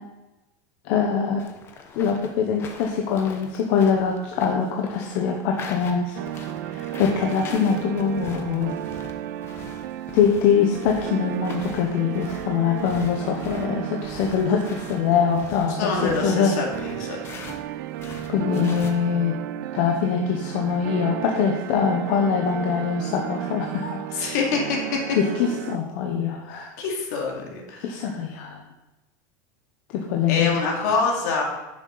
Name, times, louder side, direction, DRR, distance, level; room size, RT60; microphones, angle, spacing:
voice 1, 0.8-1.4 2.0-6.2 6.6-8.7 10.1-16.5 18.3-19.3 19.7-24.0 25.2-26.7 27.8-28.6 29.9-30.6, left 6 dB, 50° left, 1 dB, 0.9 m, -23 dB
sound 1, 1.4-17.6 17.9-18.9, left 5 dB, 25° left, 0.9 m, -41 dB
sound 2, 6.2-25.8, right 12 dB, 80° right, 0.5 m, -34 dB
voice 2, 15.7-17.2 24.1-25.2 26.8-27.9 30.3-31.4, left 4 dB, 65° left, -1 dB, 2.5 m, -25 dB
10.0 x 7.2 x 4.0 m, 1.0 s
supercardioid pair, 170°, 10 cm